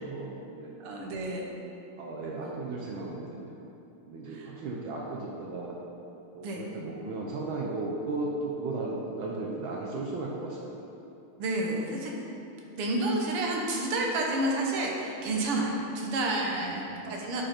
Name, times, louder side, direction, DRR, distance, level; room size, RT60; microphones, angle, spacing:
voice 1, 0.0-0.7 2.0-3.7 4.1-5.7 6.3-10.9 16.5-16.9, right 2 dB, 70° right, -2 dB, 1.5 m, -35 dB
voice 2, 0.8-1.5 2.4-2.6 4.3-4.5 6.4-6.6 11.4-12.1 12.8-17.4, right 2 dB, 90° right, 0 dB, 2.0 m, -30 dB
9.0 x 5.1 x 4.4 m, 2.9 s
omnidirectional pair, 2.4 m